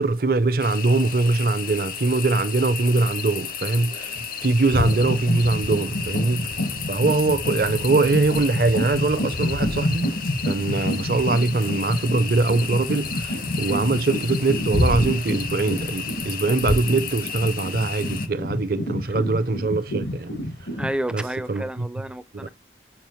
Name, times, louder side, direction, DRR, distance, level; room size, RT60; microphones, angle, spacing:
voice 1, 0.0-6.5 6.9-10.1 10.4-20.3 21.1-21.9 22.3-22.5, right 3 dB, 55° right, 0.6 m, -22 dB
sound 1, 0.6-18.3, left 7 dB, 55° left, 0.6 m, -33 dB
sound 2, 3.8-4.2 4.5-20.9, left 1 dB, 85° left, 1.3 m, -28 dB
voice 2, 20.8-22.5, right 1 dB, 5° right, 0.4 m, -31 dB
7.1 x 4.9 x 3.1 m
head